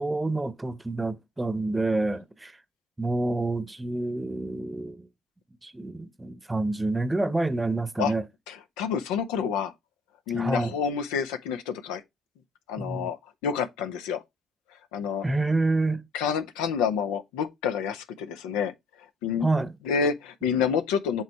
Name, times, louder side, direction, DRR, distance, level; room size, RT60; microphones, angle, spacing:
voice 1, 0.0-2.5 3.0-5.1 5.6-8.3 10.3-10.7 12.8-13.1 15.2-16.0 19.4-19.7, right 2 dB, 15° right, 0.8 m, -28 dB
voice 2, 8.5-9.7 10.3-12.0 12.7-14.2 14.9-15.2 16.1-18.7 19.2-19.5 19.8-21.2, left 7 dB, 90° left, 0.6 m, -28 dB
8.0 x 3.1 x 4.5 m
supercardioid pair, 60°, 0 cm